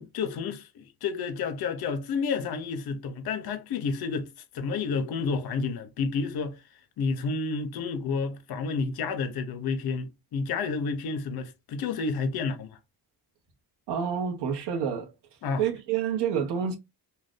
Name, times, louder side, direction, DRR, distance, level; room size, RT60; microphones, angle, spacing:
voice 1, 0.0-4.3 4.5-6.6 7.0-12.8 15.4-15.6, left 4 dB, 70° left, 0.7 m, -30 dB
voice 2, 13.9-15.1 15.6-16.8, right 8 dB, 90° right, 0.8 m, -28 dB
2.5 x 2.2 x 3.4 m
cardioid pair, 105°, 40 cm